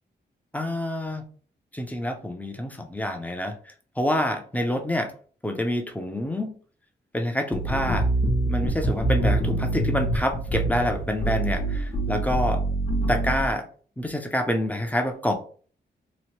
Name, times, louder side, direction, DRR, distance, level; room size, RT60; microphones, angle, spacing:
voice 1, 0.5-1.2 1.7-3.6 4.0-5.1 5.4-6.5 7.1-8.1 8.5-12.6 13.1-13.7 14.0-15.3, left 1 dB, 10° left, 5 dB, 0.6 m, -27 dB
sound 1, 7.5-13.5, right 2 dB, 30° left, 0.9 m, -25 dB
2.9 x 2.1 x 3.1 m, 0.43 s
cardioid pair, 70°, 19 cm